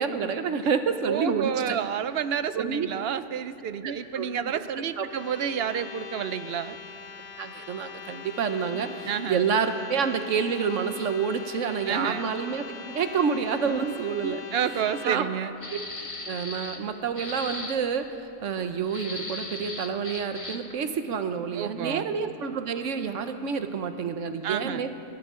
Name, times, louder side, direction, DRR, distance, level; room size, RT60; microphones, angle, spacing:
voice 1, 0.0-1.8 2.5-2.9 3.8-4.6 5.0-5.1 7.4-12.7 12.9-14.4 15.0-15.3 15.7-15.8 16.3-18.1 18.4-24.9, right 6 dB, 85° right, 8 dB, 1.2 m, -28 dB
voice 2, 1.1-6.8 8.6-9.4 11.9-12.2 13.6-13.9 14.2-15.5 21.5-22.1 24.4-24.8, right 8 dB, 65° right, 13 dB, 0.8 m, -30 dB
sound 1, 5.0-15.2, left 6 dB, 85° left, 1.3 m, -42 dB
sound 2, 15.6-16.8 17.2-17.8 18.9-20.7, left 2 dB, 30° left, 1.3 m, -37 dB
29.5 x 12.0 x 3.7 m, 2.9 s
omnidirectional pair, 1.3 m